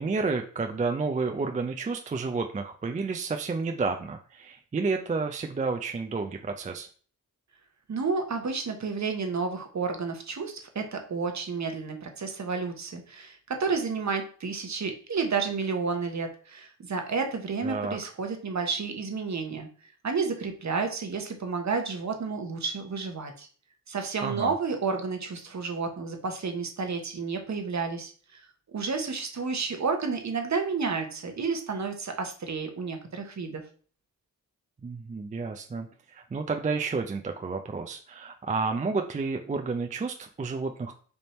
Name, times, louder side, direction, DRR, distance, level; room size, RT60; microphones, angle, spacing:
voice 1, 0.0-6.9 17.6-18.0 24.2-24.5 34.8-40.9, right 4 dB, 20° right, 4 dB, 0.4 m, -30 dB
voice 2, 7.9-19.7 20.0-23.5 23.9-28.4 28.7-33.6, right 4 dB, 50° right, 5 dB, 1.0 m, -31 dB
3.4 x 2.7 x 4.2 m, 0.43 s
cardioid pair, 55°, 36 cm